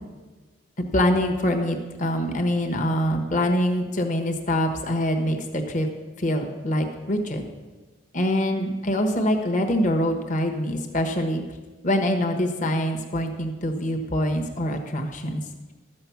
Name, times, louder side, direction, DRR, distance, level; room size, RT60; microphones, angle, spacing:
voice 1, 0.9-5.9 6.2-7.4 8.1-11.4 11.8-15.4, equal, 40° left, 4 dB, 1.2 m, -24 dB
13.0 x 7.7 x 5.9 m, 1.3 s
head